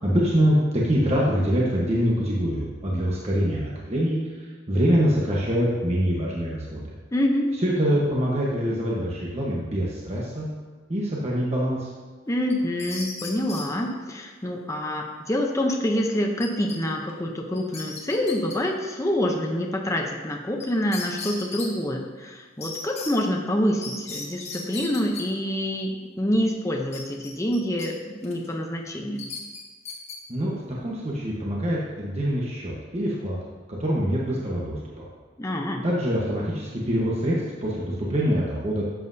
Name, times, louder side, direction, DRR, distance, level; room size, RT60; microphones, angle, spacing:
voice 1, 0.0-4.2 4.7-6.9 7.6-10.5 10.9-11.9 30.3-33.4 33.7-35.1 35.8-38.8, equal, 35° right, -5 dB, 1.1 m, -24 dB
voice 2, 7.1-7.5 12.3-29.3 35.4-35.8, left 1 dB, 15° left, 1 dB, 0.7 m, -26 dB
sound 1, 12.5-13.7 16.4-16.8 17.1-17.2 17.5-18.6 20.6-20.7 20.9-21.7 22.6-23.1 23.8-25.2 26.9-27.9 28.2-28.5 29.2-30.2, left 4 dB, 35° left, 1.3 m, -36 dB
11.5 x 7.5 x 2.7 m, 1.4 s
head